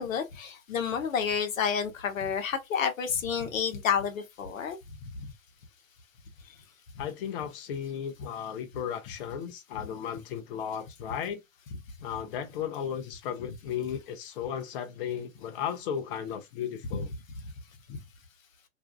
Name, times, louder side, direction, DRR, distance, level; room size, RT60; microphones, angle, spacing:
voice 1, 0.0-4.8 17.9-18.0, left 7 dB, 65° left, 0.8 m, -30 dB
voice 2, 7.0-11.4 12.0-17.1, left 8 dB, 40° left, 0.5 m, -35 dB
2.5 x 2.3 x 2.2 m
figure-of-eight pair, 100°, 42 cm